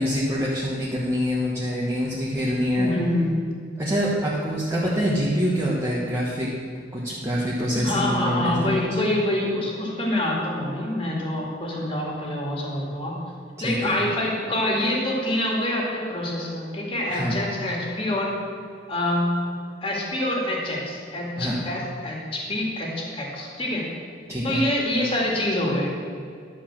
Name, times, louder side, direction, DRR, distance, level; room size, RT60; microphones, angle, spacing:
voice 1, 0.0-2.9 3.8-6.5 6.9-8.8 13.6-14.0 17.1-17.4 21.4-21.6 24.3-24.7, equal, 15° right, -7 dB, 1.3 m, -25 dB
voice 2, 2.8-3.4 7.8-13.2 13.6-18.3 18.9-19.6 19.8-23.9 24.4-25.9, left 1 dB, 30° left, -2 dB, 2.1 m, -26 dB
11.5 x 5.0 x 7.3 m, 2.3 s
head